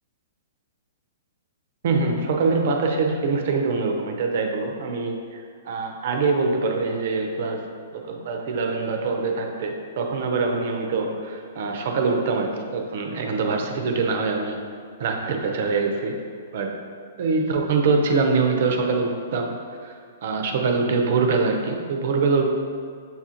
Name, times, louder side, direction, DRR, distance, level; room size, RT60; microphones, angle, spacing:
voice 1, 1.8-7.6 7.9-14.6 15.0-16.2 16.5-16.8 17.2-19.5 19.8-22.5, right 4 dB, 60° right, 3 dB, 0.6 m, -24 dB
6.9 x 2.4 x 2.8 m, 2.2 s
hypercardioid pair, 120°, 0 cm